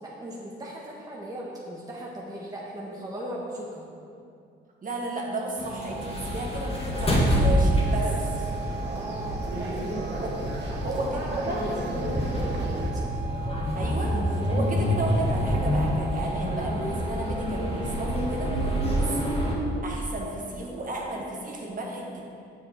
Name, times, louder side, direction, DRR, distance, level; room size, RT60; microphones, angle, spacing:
voice 1, 0.0-3.8 8.8-10.0 10.7-13.1 18.8-19.1, right 1 dB, 20° right, -4 dB, 1.2 m, -38 dB
voice 2, 4.8-8.5 10.2-11.6 13.7-19.3 19.8-22.2, right 1 dB, 45° right, -2 dB, 1.7 m, -33 dB
sound 1, 5.6-19.6, equal, 30° left, 1.9 m, -27 dB
sound 2, 7.7-12.9, right 1 dB, 60° right, 1.5 m, -34 dB
7.5 x 7.3 x 4.3 m, 2.5 s
cardioid pair, 90°, 20 cm